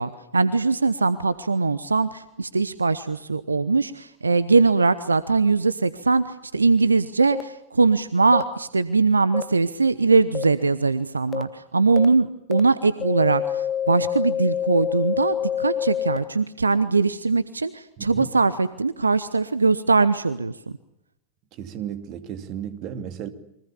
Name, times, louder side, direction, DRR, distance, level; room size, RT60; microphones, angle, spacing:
voice 1, 0.0-20.5, right 4 dB, 80° right, 0.9 m, -21 dB
sound 1, 7.3-7.4 8.3-8.4 9.3-9.4 10.3-10.4 11.3-11.4 12.0-12.1 12.5-12.6 13.0-16.2, left 9 dB, 25° left, 1.7 m, -26 dB
voice 2, 18.0-18.3 21.5-23.3, right 8 dB, 40° right, 2.5 m, -34 dB
29.5 x 24.0 x 7.1 m
figure-of-eight pair, 90°, 0 cm